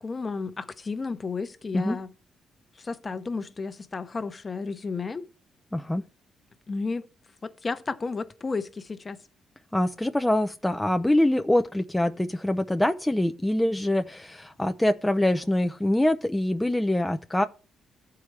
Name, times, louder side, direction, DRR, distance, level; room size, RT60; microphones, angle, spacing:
voice 1, 0.0-2.1 2.8-5.3 6.7-7.1 7.4-9.2, left 4 dB, 35° left, 0.8 m, -32 dB
voice 2, 5.7-6.0 9.7-17.4, left 1 dB, 10° left, 0.4 m, -24 dB
14.0 x 4.7 x 3.3 m
cardioid pair, 80°, 0 cm